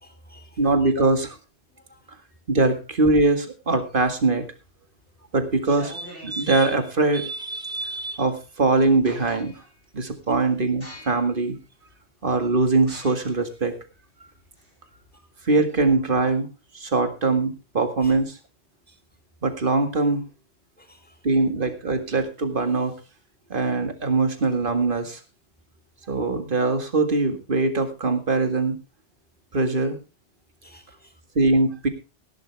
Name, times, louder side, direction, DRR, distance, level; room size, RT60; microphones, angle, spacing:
voice 1, 0.0-0.6 0.9-1.1 1.8-2.1 18.0-18.1 20.8-21.2 30.6-31.2, left 1 dB, 10° left, 7 dB, 2.4 m, -45 dB
voice 2, 0.6-1.3 2.5-4.5 5.3-9.5 9.9-11.6 12.2-13.8 15.5-16.5 16.7-18.3 19.4-20.2 21.2-23.0 23.5-25.2 26.1-28.8 29.5-30.0 31.4-31.9, right 3 dB, 50° right, 8 dB, 2.1 m, -22 dB
sound 1, 4.6-5.0 5.5-6.8 8.4-8.5 8.8-9.7 10.2-10.4 10.8-11.4 11.9-12.0 12.8-15.1, left 1 dB, 85° left, 8.3 m, -44 dB
17.0 x 11.5 x 3.4 m, 0.30 s
omnidirectional pair, 1.2 m